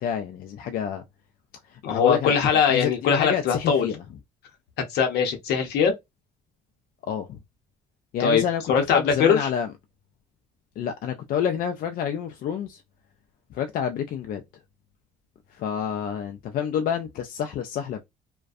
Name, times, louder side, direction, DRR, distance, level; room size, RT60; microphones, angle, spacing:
voice 1, 0.0-1.0 1.7-3.9 7.0-7.4 8.1-8.6 8.9-9.7 10.8-12.8 13.5-14.4 15.5-18.0, left 8 dB, 60° left, 0.4 m, -28 dB
voice 2, 1.8-3.9 4.9-5.9 8.2-8.4 8.7-9.5, left 6 dB, 75° left, 0.8 m, -21 dB
2.5 x 2.2 x 2.3 m
cardioid pair, 110°, 17 cm